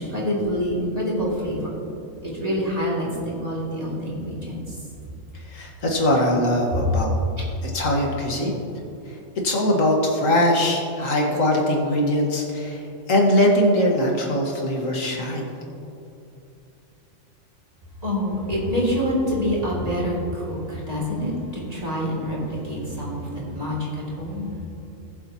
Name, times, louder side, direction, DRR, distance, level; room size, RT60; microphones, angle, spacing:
voice 1, 0.0-1.7 2.2-3.1 3.4-4.8 6.7-6.8 18.0-24.5, equal, 30° right, -6 dB, 2.8 m, -26 dB
voice 2, 5.3-7.2 7.6-8.6 9.1-9.2 9.4-15.5, left 1 dB, 90° left, -1 dB, 2.0 m, -21 dB
19.5 x 7.5 x 3.0 m, 2.7 s
omnidirectional pair, 1.3 m